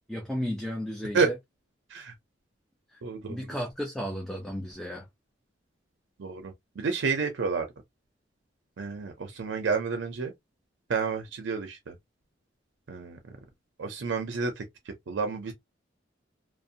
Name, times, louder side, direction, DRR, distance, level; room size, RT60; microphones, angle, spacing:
voice 1, 0.1-1.3 2.9-3.0 3.3-5.1, equal, ahead, 0.4 m, -34 dB
voice 2, 3.0-3.5 6.2-7.7 8.8-10.3 10.9-11.9 12.9-13.2 13.8-14.6 15.1-15.5, right 4 dB, 80° right, 0.5 m, -30 dB
2.5 x 2.0 x 2.6 m
head